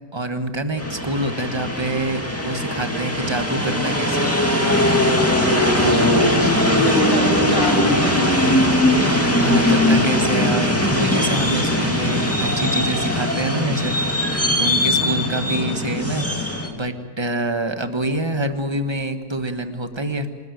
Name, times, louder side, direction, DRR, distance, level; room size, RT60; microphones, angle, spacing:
voice 1, 0.1-4.3 5.8-6.2 9.4-14.0 14.6-16.3 16.7-20.3, right 1 dB, 15° right, 8 dB, 1.1 m, -26 dB
sound 1, 0.8-16.7, left 1 dB, 10° left, 2.3 m, -20 dB
voice 2, 5.8-8.9 11.8-12.4 14.8-15.6, equal, 45° right, -2 dB, 4.3 m, -30 dB
26.5 x 13.5 x 9.3 m, 1.5 s
omnidirectional pair, 1.9 m